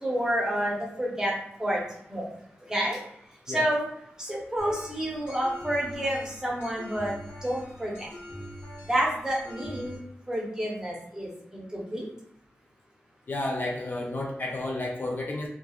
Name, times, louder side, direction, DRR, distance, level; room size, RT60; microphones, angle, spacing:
voice 1, 0.0-1.3 1.6-1.8 2.1-2.3 2.7-3.0 3.5-3.8 4.2-7.1 7.4-8.1 8.9-10.0 10.3-12.0, equal, 15° right, -3 dB, 0.7 m, -29 dB
sound 1, 4.6-10.0, equal, 65° left, 0.8 m, -43 dB
voice 2, 13.3-15.5, left 2 dB, 45° left, -1 dB, 0.4 m, -31 dB
3.0 x 2.3 x 2.3 m, 0.72 s
wide cardioid pair, 125°, 5 cm